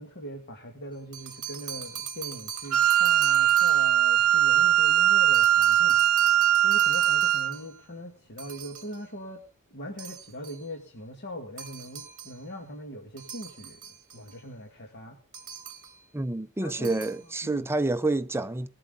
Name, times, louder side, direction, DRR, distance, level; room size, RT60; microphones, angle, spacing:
voice 1, 0.0-9.4 9.7-13.8 14.1-15.2 16.6-17.0 17.4-17.7, equal, 50° left, 1.9 m, -41 dB
sound 1, 0.9-4.0 5.3-7.8 8.4-9.1 10.0-10.7 11.6-12.4 13.2-14.4 15.3-16.0 16.7-17.3, right 7 dB, 35° right, 2.4 m, -41 dB
Wind instrument woodwind instrument, 2.7-7.5, right 11 dB, 80° right, 0.8 m, -21 dB
voice 2, 16.1-18.7, right 2 dB, 10° right, 0.5 m, -28 dB
20.0 x 7.7 x 3.8 m
head